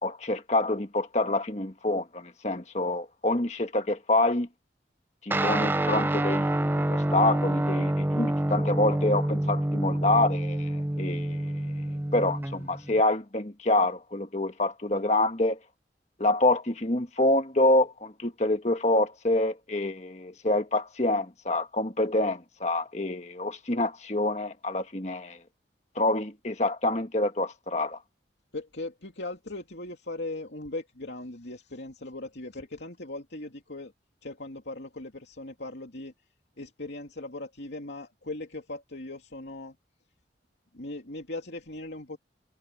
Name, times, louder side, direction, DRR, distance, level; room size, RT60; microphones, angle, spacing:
voice 1, 0.0-4.5 5.2-11.5 12.1-15.6 16.2-25.4 25.9-28.0, left 2 dB, 40° left, 1.6 m, -27 dB
Guitar, 5.3-13.0, right 1 dB, 10° right, 0.5 m, -27 dB
voice 2, 28.5-33.9 34.2-36.1 36.6-39.7 40.7-42.2, left 2 dB, 75° left, 2.7 m, -39 dB
head